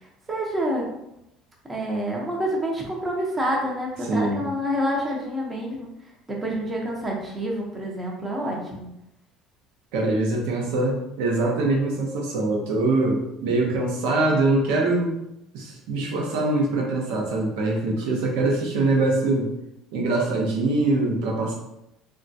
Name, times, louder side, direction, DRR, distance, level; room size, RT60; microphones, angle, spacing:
voice 1, 0.3-0.9 1.7-5.9 6.3-8.9, equal, 15° right, -2 dB, 0.7 m, -27 dB
voice 2, 4.1-4.4 9.9-15.2 15.5-19.5 19.9-21.5, right 2 dB, 85° right, 0 dB, 0.7 m, -23 dB
3.5 x 2.2 x 2.6 m, 0.83 s
cardioid pair, 130°, 0 cm